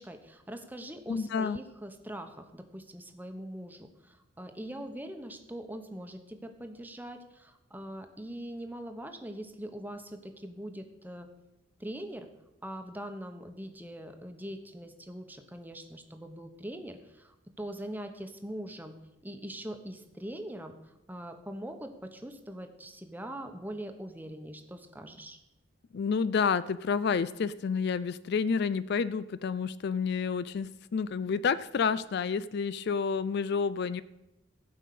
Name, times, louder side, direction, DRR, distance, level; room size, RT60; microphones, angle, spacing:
voice 1, 0.0-11.3 11.8-12.3 12.6-19.0 19.2-25.4, right 1 dB, 10° right, 6 dB, 1.1 m, -42 dB
voice 2, 1.1-1.6 25.9-34.0, left 5 dB, 55° left, 16 dB, 0.4 m, -29 dB
16.0 x 5.5 x 8.4 m, 0.94 s
head